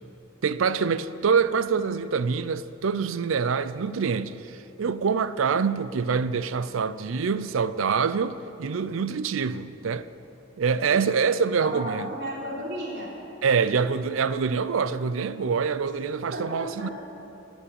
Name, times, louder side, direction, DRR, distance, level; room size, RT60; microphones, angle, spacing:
voice 1, 0.4-10.1 10.6-12.1 13.4-16.9, right 5 dB, 80° right, 0.5 m, -25 dB
voice 2, 10.7-11.1 11.6-13.1 13.6-13.8 16.3-16.9, equal, 55° right, 3.2 m, -35 dB
14.0 x 7.3 x 8.7 m
head